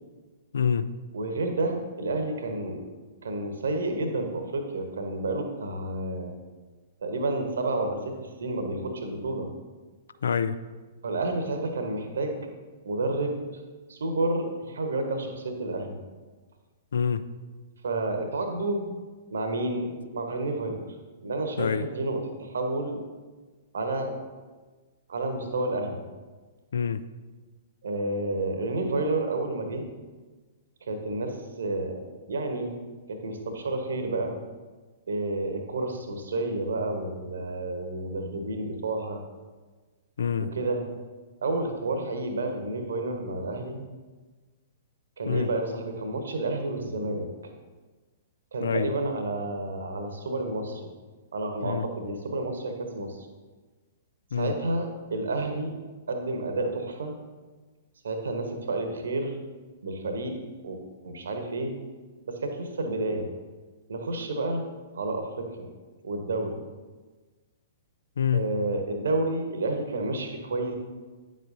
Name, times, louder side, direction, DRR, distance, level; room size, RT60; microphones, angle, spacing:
voice 1, 0.5-0.9 10.2-10.6 16.9-17.2 21.6-21.8 26.7-27.0 40.2-40.5 45.3-45.5 48.6-48.9 51.6-51.9 54.3-54.5 68.2-68.5, left 7 dB, 65° left, 13 dB, 0.3 m, -26 dB
voice 2, 1.1-2.8 3.2-6.3 7.0-9.5 11.0-12.4 12.8-13.4 13.9-16.0 17.8-19.0 19.3-20.9 21.2-23.0 23.7-24.1 25.1-26.0 27.8-29.9 30.8-32.0 32.3-32.7 33.1-34.3 35.1-39.2 40.4-40.8 41.4-43.8 45.2-47.3 48.5-50.9 51.3-53.2 54.4-55.7 56.1-57.2 58.0-59.4 59.8-60.4 60.6-61.7 62.2-63.3 63.9-65.7 66.0-66.6 68.3-70.7, right 2 dB, 65° right, 5 dB, 1.0 m, -30 dB
9.4 x 7.5 x 2.6 m, 1.3 s
figure-of-eight pair, 110°, 0 cm